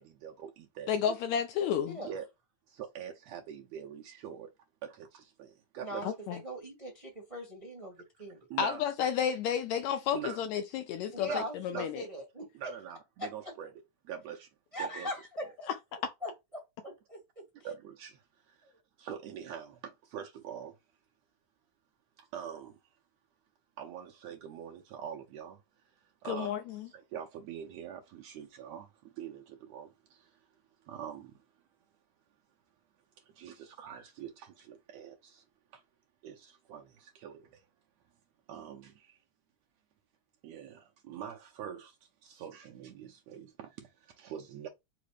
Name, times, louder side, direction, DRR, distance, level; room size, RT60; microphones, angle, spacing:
voice 1, 0.0-1.2 2.0-2.3 2.7-4.5 4.8-6.1 8.5-8.8 10.1-10.5 11.3-11.5 11.7-11.9 12.5-13.7 14.0-14.5 14.8-15.1 17.6-18.7 19.0-20.8 22.2-22.8 23.8-25.6 26.0-30.4 30.8-31.4 33.2-35.4 35.7-35.8 36.2-37.7 38.5-39.2 40.4-44.7, right 9 dB, 75° right, 1.6 m, -44 dB
voice 2, 0.9-2.0 6.0-6.4 8.6-12.0 26.3-26.6, left 8 dB, 80° left, 1.7 m, -31 dB
voice 3, 5.8-8.4 11.1-12.5 13.2-13.3 14.7-15.5 16.2-16.3 16.8-17.2, equal, 25° right, 0.6 m, -40 dB
5.0 x 2.0 x 4.8 m
omnidirectional pair, 3.6 m